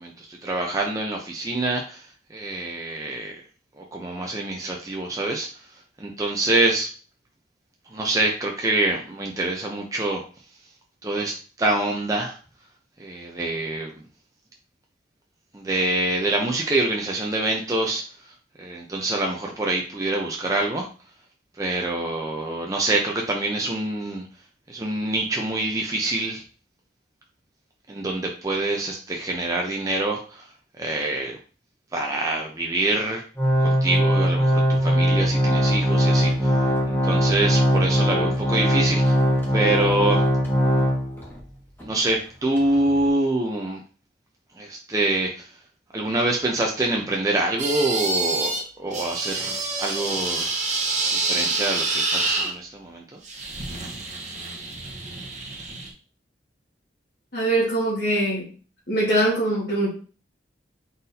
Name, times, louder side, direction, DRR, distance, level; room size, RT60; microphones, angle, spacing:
voice 1, 0.0-3.4 3.8-5.5 6.0-6.9 7.9-10.2 11.0-12.4 13.0-13.9 15.5-18.0 18.6-20.9 21.6-24.2 24.7-26.4 27.9-30.5 30.8-31.4 31.9-33.2 33.6-36.6 36.9-39.2 39.5-40.3 41.8-43.8 44.6-45.5 45.9-50.6 51.1-53.2, right 2 dB, 20° right, 0 dB, 0.5 m, -26 dB
Organ, 33.4-41.4 41.8-41.9 42.6-42.7, equal, 10° left, 1.0 m, -20 dB
sound 1, 47.6-48.6 48.9-52.5 53.2-55.9, right 3 dB, 40° right, 0.9 m, -27 dB
voice 2, 57.3-58.5 58.9-59.9, right 1 dB, 60° left, -8 dB, 1.5 m, -22 dB
4.0 x 2.6 x 4.0 m, 0.38 s
head